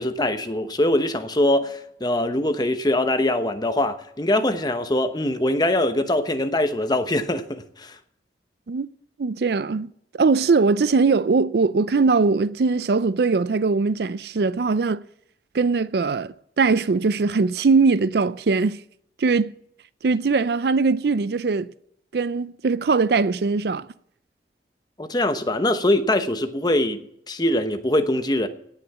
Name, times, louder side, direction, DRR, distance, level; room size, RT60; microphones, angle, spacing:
voice 1, 0.0-8.0 25.0-28.5, left 1 dB, 25° left, 0.9 m, -23 dB
voice 2, 9.2-9.9 10.2-15.0 15.5-18.8 19.2-19.5 20.0-21.7 22.1-23.9, right 4 dB, 65° right, 0.4 m, -21 dB
17.5 x 6.5 x 7.2 m
head